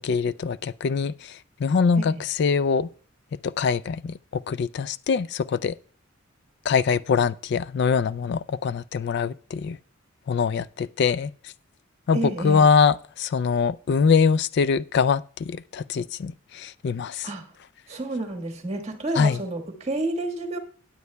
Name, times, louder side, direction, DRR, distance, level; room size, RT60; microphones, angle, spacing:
voice 1, 0.0-2.9 3.4-5.8 6.7-9.8 10.3-11.5 12.1-17.3 19.2-19.4, left 5 dB, 55° left, 0.3 m, -23 dB
voice 2, 12.1-12.6 17.2-17.5 17.9-20.6, right 2 dB, 30° right, 1.5 m, -30 dB
18.0 x 8.2 x 2.2 m
head